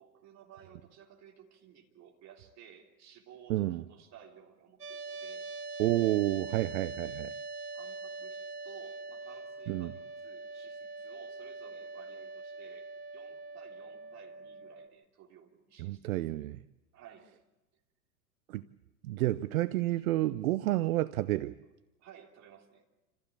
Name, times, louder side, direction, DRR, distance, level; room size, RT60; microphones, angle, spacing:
voice 1, 0.0-5.5 7.7-16.2 16.9-17.3 22.0-22.8, right 9 dB, 35° right, 2 dB, 3.4 m, -56 dB
voice 2, 3.5-3.8 5.8-7.3 9.7-9.9 15.8-16.6 18.5-18.6 19.0-21.5, right 16 dB, 65° right, 17 dB, 0.7 m, -30 dB
sound 1, 4.8-14.9, right 3 dB, 80° right, 1.8 m, -43 dB
28.0 x 15.0 x 8.5 m, 1.0 s
hypercardioid pair, 105°, 46 cm